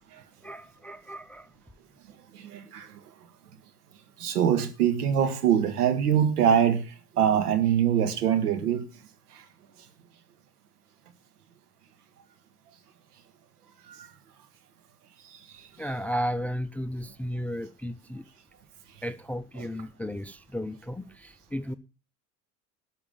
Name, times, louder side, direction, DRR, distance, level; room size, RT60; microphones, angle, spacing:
voice 1, 0.4-1.5 15.8-18.3 19.0-21.7, equal, 5° left, 0.5 m, -34 dB
voice 2, 2.4-2.9 4.2-6.8 7.2-8.8 19.6-19.7, right 9 dB, 80° right, 1.8 m, -23 dB
12.5 x 5.8 x 7.1 m
hypercardioid pair, 75°, 45 cm